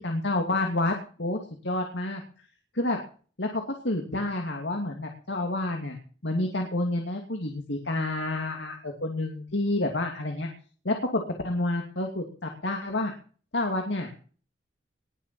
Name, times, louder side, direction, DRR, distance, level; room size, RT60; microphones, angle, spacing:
voice 1, 0.0-2.2 2.7-3.0 3.4-6.0 6.2-10.5 10.8-13.1 13.5-14.1, left 2 dB, 70° left, 2 dB, 2.7 m, -29 dB
20.5 x 7.0 x 7.7 m, 0.41 s
head